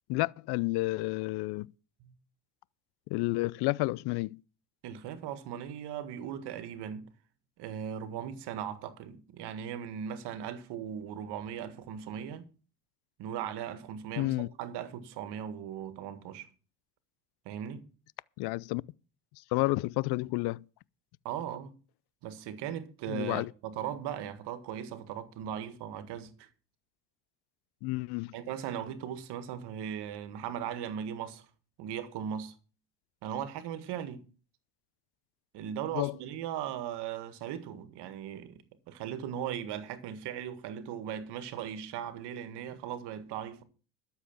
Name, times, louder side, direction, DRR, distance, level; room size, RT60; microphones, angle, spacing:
voice 1, 0.1-1.7 3.1-4.4 14.2-14.5 18.4-18.8 19.5-20.7 23.1-23.5 27.8-28.3 35.9-36.1, left 21 dB, 65° left, 0.6 m, -30 dB
voice 2, 4.8-7.1 7.6-12.5 13.2-16.5 17.5-17.8 21.3-21.8 22.2-26.5 28.3-31.5 31.8-32.5 33.2-34.2 35.5-43.6, right 9 dB, 70° right, 1.8 m, -38 dB
12.5 x 7.1 x 7.1 m
supercardioid pair, 100°, 42 cm